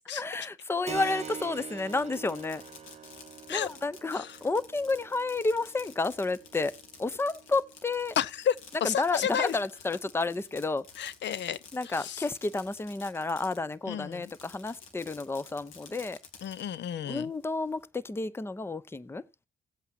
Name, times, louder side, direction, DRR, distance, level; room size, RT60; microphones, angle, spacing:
voice 1, 0.1-2.6 3.5-6.7 7.0-8.2 8.8-10.9 11.7-16.2 17.0-19.2, left 3 dB, 10° left, 0.6 m, -31 dB
Fireworks, 0.8-13.7 14.1-16.6, left 6 dB, 85° left, 2.5 m, -51 dB
Keyboard (musical), 0.9-9.1, right 7 dB, 35° right, 0.8 m, -45 dB
voice 2, 8.2-8.5 8.8-9.6 11.0-11.6 12.0-12.2 13.9-14.3 16.4-17.3, left 9 dB, 65° left, 0.7 m, -31 dB
17.5 x 8.1 x 2.7 m
cardioid pair, 90°, 20 cm